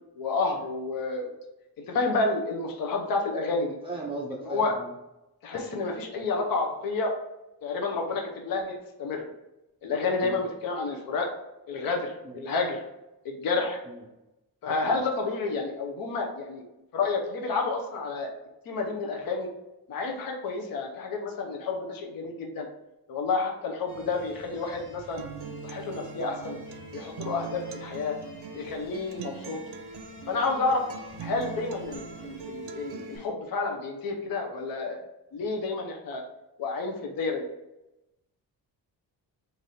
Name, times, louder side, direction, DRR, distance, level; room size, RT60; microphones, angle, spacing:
voice 1, 0.2-1.3 1.9-3.8 4.4-4.7 5.4-7.1 7.6-9.3 9.8-11.3 11.7-12.8 13.2-13.8 14.6-16.6 16.9-18.3 18.7-19.5 19.9-22.7 23.1-25.2 25.6-26.6 26.9-28.2 28.5-29.6 30.3-30.8 31.2-35.0 35.3-36.2 36.6-37.5, left 3 dB, 65° left, 2 dB, 0.7 m, -30 dB
voice 2, 3.8-4.9 10.2-10.4 12.2-12.4 13.9-14.0 14.8-15.0, right 2 dB, 15° right, -3 dB, 0.5 m, -37 dB
sound 1, 23.9-33.3, right 1 dB, 10° left, 1.3 m, -52 dB
Acoustic guitar, 25.2-33.2, right 4 dB, 85° right, 0.6 m, -41 dB
3.3 x 2.6 x 4.0 m, 0.95 s
cardioid pair, 130°, 38 cm